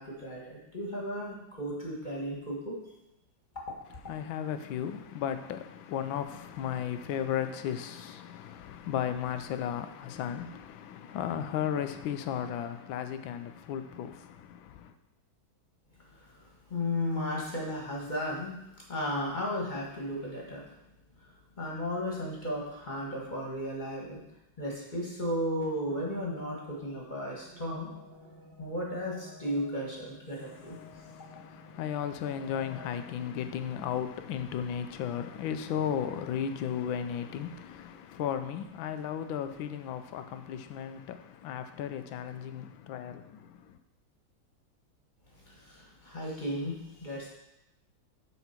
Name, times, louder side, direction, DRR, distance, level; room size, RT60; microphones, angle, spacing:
voice 1, 0.0-2.8 16.1-18.6 18.9-20.6 21.2-24.2 24.6-27.9 28.6-30.8 45.3-47.3, equal, 25° left, 1.6 m, -35 dB
voice 2, 4.1-14.9 30.4-43.8, left 9 dB, 80° left, 1.4 m, -35 dB
sound 1, 25.6-33.3, left 1 dB, 65° right, 1.7 m, -53 dB
8.2 x 4.3 x 5.8 m
omnidirectional pair, 2.1 m